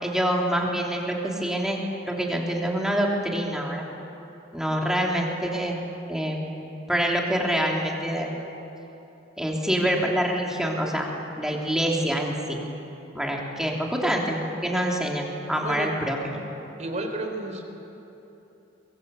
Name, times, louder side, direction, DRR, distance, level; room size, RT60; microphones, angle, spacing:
voice 1, 0.0-3.9 4.5-5.8 6.1-6.4 6.9-8.3 9.4-11.1 11.4-12.6 13.1-16.4, equal, 5° right, -1 dB, 3.1 m, -26 dB
voice 2, 16.8-17.6, right 2 dB, 40° right, 4 dB, 3.4 m, -31 dB
23.5 x 22.0 x 8.2 m, 3.0 s
head